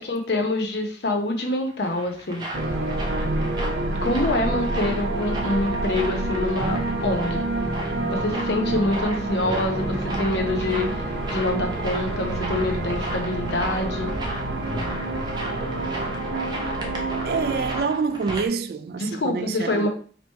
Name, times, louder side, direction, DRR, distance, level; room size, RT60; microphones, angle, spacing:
voice 1, 0.0-2.4 4.0-7.5 8.1-14.1 19.0-19.9, left 2 dB, 75° left, 0.8 m, -26 dB
sound 1, 1.4-18.5, right 1 dB, 25° right, 0.7 m, -36 dB
sound 2, 2.5-17.8, right 2 dB, 75° right, 0.8 m, -28 dB
Piano, 6.6-13.4, left 1 dB, 35° left, 0.8 m, -38 dB
voice 2, 17.2-19.9, right 5 dB, 60° right, 0.3 m, -27 dB
3.0 x 3.0 x 4.3 m
head